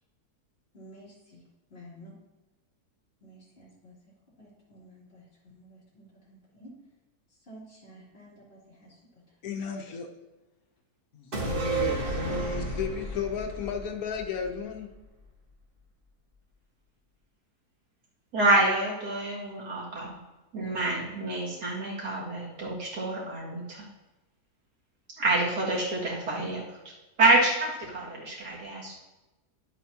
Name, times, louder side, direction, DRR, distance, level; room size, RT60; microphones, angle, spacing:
voice 1, 0.7-1.4 1.7-2.1 3.2-3.9 4.4-6.7 7.3-9.2 9.9-10.0, equal, 40° left, -8 dB, 3.4 m, -52 dB
voice 2, 9.4-10.1 11.1-14.9, left 6 dB, 65° left, 3 dB, 1.4 m, -34 dB
sound 1, 11.3-14.9 15.2-15.3, right 2 dB, 35° right, 1.6 m, -32 dB
voice 3, 18.3-20.2 20.5-23.8 25.2-26.9 27.2-28.9, right 2 dB, 85° right, -4 dB, 2.8 m, -27 dB
11.0 x 8.2 x 2.9 m, 1.1 s
omnidirectional pair, 1.7 m